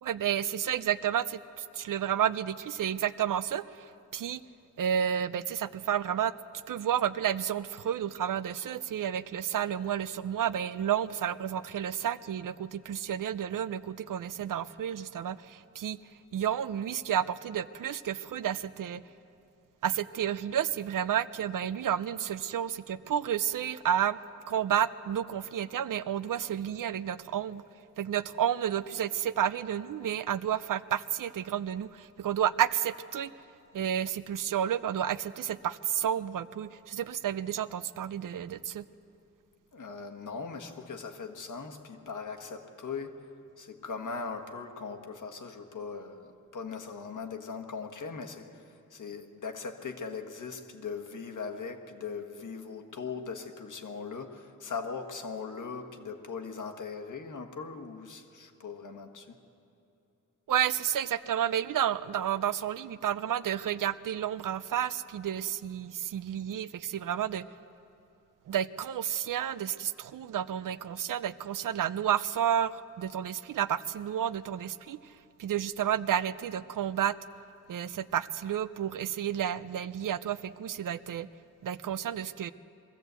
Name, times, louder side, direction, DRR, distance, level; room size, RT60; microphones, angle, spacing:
voice 1, 0.0-4.4 4.8-6.3 6.7-16.0 16.3-19.0 19.8-24.2 24.5-27.6 28.0-33.3 33.7-38.9 60.5-67.5 68.5-75.1 75.4-77.2 77.7-81.3 81.6-82.5, right 9 dB, 85° right, 15 dB, 0.6 m, -31 dB
voice 2, 39.7-59.4, left 5 dB, 70° left, 5 dB, 1.5 m, -40 dB
22.5 x 15.0 x 8.1 m, 2.7 s
wide cardioid pair, 180°, 31 cm